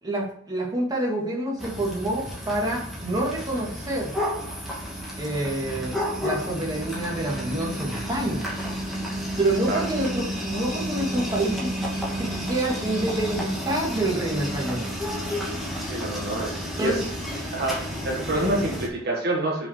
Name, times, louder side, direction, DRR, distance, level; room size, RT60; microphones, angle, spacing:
voice 1, 0.0-4.1 5.2-8.5 9.4-11.7 12.2-14.9 16.8-17.0, right 1 dB, 20° right, -3 dB, 2.5 m, -27 dB
sound 1, 1.6-18.9, equal, ahead, 2.5 m, -31 dB
voice 2, 15.9-17.1 17.5-19.7, right 1 dB, 50° right, -1 dB, 1.7 m, -27 dB
6.9 x 5.8 x 6.8 m, 0.62 s
head